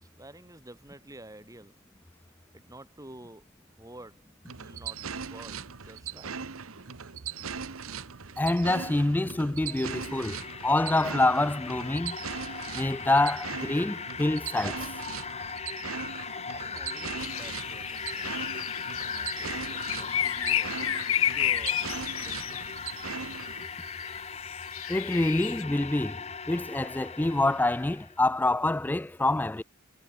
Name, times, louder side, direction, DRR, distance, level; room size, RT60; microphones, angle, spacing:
voice 1, 0.0-1.8 2.5-6.6 16.5-22.8, right 1 dB, 15° right, 4.3 m, -50 dB
sound 1, 4.5-23.6, right 6 dB, 90° right, 1.1 m, -39 dB
voice 2, 8.4-12.2 12.7-14.9 24.9-29.6, left 2 dB, 10° left, 0.3 m, -26 dB
sound 2, 9.5-28.2, left 6 dB, 30° left, 1.7 m, -39 dB
sound 3, 17.2-25.6, left 11 dB, 85° left, 1.3 m, -32 dB
head